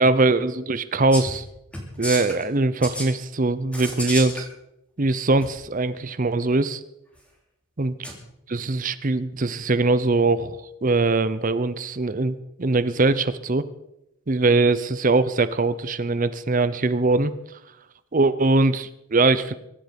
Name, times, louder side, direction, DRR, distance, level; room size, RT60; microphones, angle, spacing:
voice 1, 0.0-1.4 2.0-4.5 5.0-6.8 7.8-7.9 8.5-13.6 14.3-17.3 18.1-19.5, right 3 dB, 35° right, 14 dB, 0.7 m, -21 dB
sound 1, 1.1-1.4 1.7-2.4 2.8-3.1 3.7-4.4 5.4-5.5 8.0-8.2, equal, 5° left, 3.0 m, -31 dB
23.0 x 10.5 x 5.3 m, 0.84 s
head